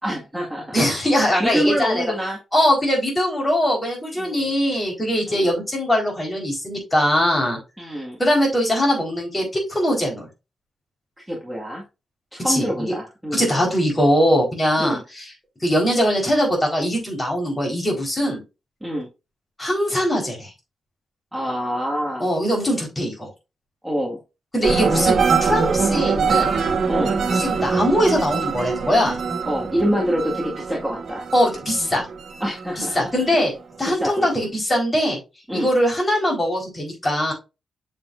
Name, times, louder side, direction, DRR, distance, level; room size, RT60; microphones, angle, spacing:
voice 1, 0.0-0.8 1.4-2.4 4.2-4.5 5.3-5.5 7.8-8.2 11.3-11.8 12.3-13.5 14.8-15.0 18.8-19.1 21.3-22.3 23.8-24.2 26.9-27.2 29.5-31.2 32.4-33.0 34.0-34.3 35.5-35.7, equal, 5° right, -3 dB, 1.9 m, -26 dB
voice 2, 0.7-2.1 2.5-7.6 8.2-10.3 12.4-12.9 13.3-15.3 15.6-18.4 19.6-20.5 22.2-23.3 24.5-26.6 27.3-29.2 31.3-32.1 32.8-33.5 33.8-35.2 35.5-37.3, equal, 15° left, -1 dB, 4.3 m, -21 dB
sound 1, 24.6-33.4 33.9-34.4, right 5 dB, 70° right, 1.9 m, -23 dB
7.5 x 7.0 x 2.6 m, 0.27 s
wide cardioid pair, 120°, 0 cm